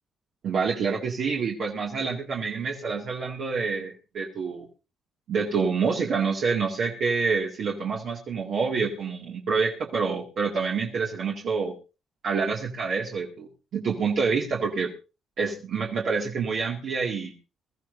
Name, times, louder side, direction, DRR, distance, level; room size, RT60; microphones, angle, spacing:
voice 1, 0.4-4.7 5.3-11.7 12.2-14.9 15.4-17.3, right 5 dB, 65° right, -2 dB, 2.2 m, -27 dB
23.0 x 14.0 x 2.7 m, 0.32 s
cardioid pair, 90°, 0 cm